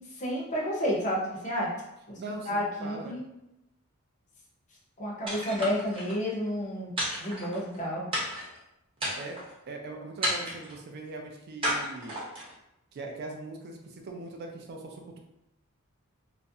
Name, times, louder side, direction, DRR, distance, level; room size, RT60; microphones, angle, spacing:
voice 1, 0.1-1.7 2.1-3.2 5.0-6.9 7.2-8.1, equal, 35° left, -3 dB, 0.6 m, -31 dB
voice 2, 2.2-2.5 2.8-3.2 9.2-9.4 9.7-12.1 12.9-15.2, right 3 dB, 45° right, 2 dB, 0.3 m, -40 dB
sound 1, 5.3-6.2 7.0-7.8 8.1-8.6 9.0-9.5 10.2-10.8 11.6-12.5, equal, 25° right, 0.7 m, -32 dB
2.4 x 2.0 x 2.6 m, 0.87 s
head